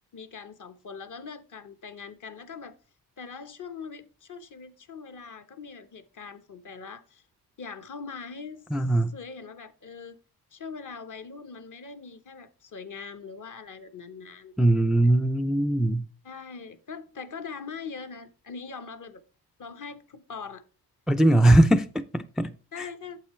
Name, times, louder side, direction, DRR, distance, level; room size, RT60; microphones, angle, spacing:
voice 1, 0.1-2.8 3.2-7.2 7.6-8.6 9.1-10.2 10.5-14.5 16.2-19.2 19.6-20.6 22.7-23.2, left 5 dB, 50° left, 1.1 m, -41 dB
voice 2, 8.7-9.1 14.6-16.1 21.1-22.5 22.8-22.9, right 1 dB, ahead, 0.4 m, -21 dB
9.0 x 7.4 x 3.2 m
cardioid pair, 85°, 41 cm